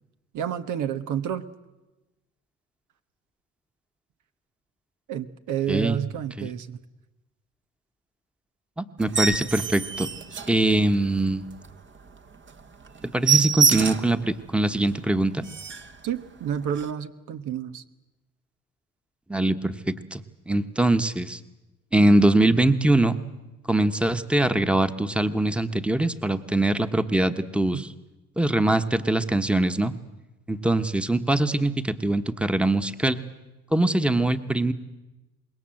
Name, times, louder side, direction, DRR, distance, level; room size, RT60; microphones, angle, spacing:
voice 1, 0.3-1.4 5.1-6.8 16.0-17.8 27.7-27.8, right 9 dB, 80° right, 10 dB, 1.2 m, -30 dB
voice 2, 5.7-6.0 6.4-6.5 8.8-10.1 10.5-11.5 13.1-15.5 19.3-20.2 20.5-21.4 21.9-23.2 23.7-27.9 28.4-29.9 30.5-33.2 33.7-34.7, right 1 dB, 5° right, 9 dB, 1.2 m, -22 dB
sound 1, 9.0-11.1 11.6-11.7 12.1-12.2 12.5-12.6 12.9-14.2 14.7-14.8 15.1-15.2 15.4-16.0 16.7-16.9, right 6 dB, 40° right, 1.2 m, -25 dB
26.0 x 21.0 x 7.7 m, 1.0 s
cardioid pair, 90°, 30 cm